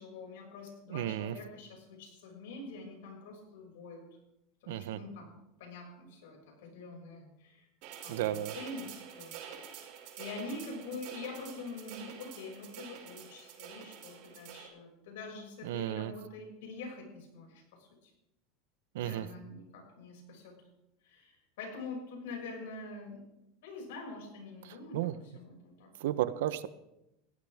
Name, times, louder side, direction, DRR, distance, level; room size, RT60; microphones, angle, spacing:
voice 1, 0.0-4.0 4.6-7.7 8.0-9.3 9.6-18.1 19.0-20.6 21.0-23.2 23.6-25.9, left 3 dB, 80° left, 1 dB, 6.5 m, -45 dB
voice 2, 0.9-1.3 4.7-5.0 8.1-8.5 15.6-16.1 18.9-19.3 24.7-25.1 26.0-26.7, right 13 dB, 80° right, 14 dB, 1.0 m, -33 dB
sound 1, 7.8-14.7, right 9 dB, 60° right, 5.3 m, -47 dB
20.0 x 16.0 x 3.6 m, 0.88 s
supercardioid pair, 125°, 0 cm